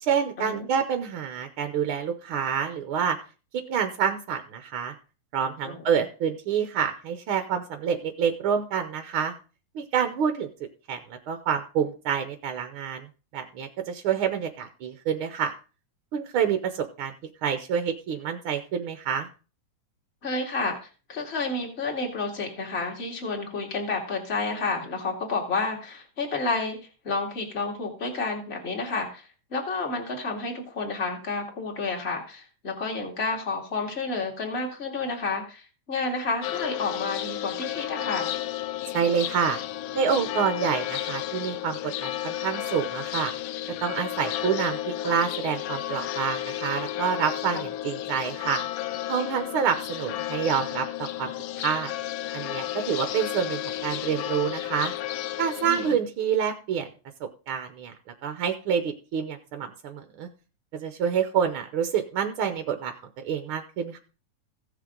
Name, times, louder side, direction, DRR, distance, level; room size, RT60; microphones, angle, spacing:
voice 1, 0.0-3.2 3.7-4.9 5.3-9.3 9.7-10.5 10.9-13.0 13.3-15.5 16.1-17.1 17.4-19.3 38.9-39.6 39.9-43.3 43.8-48.6 49.1-51.3 51.6-51.9 52.3-54.9 55.4-56.9 57.2-57.9 58.2-60.3 60.7-62.9 63.2-64.0, right 7 dB, 70° right, 7 dB, 1.3 m, -27 dB
voice 2, 5.6-6.0 20.2-26.8 27.0-38.4 47.5-47.6 55.6-55.9, left 3 dB, 25° left, 1 dB, 2.2 m, -30 dB
sound 1, 36.4-56.0, left 13 dB, 80° left, 1.4 m, -32 dB
16.0 x 6.7 x 3.8 m, 0.35 s
omnidirectional pair, 3.4 m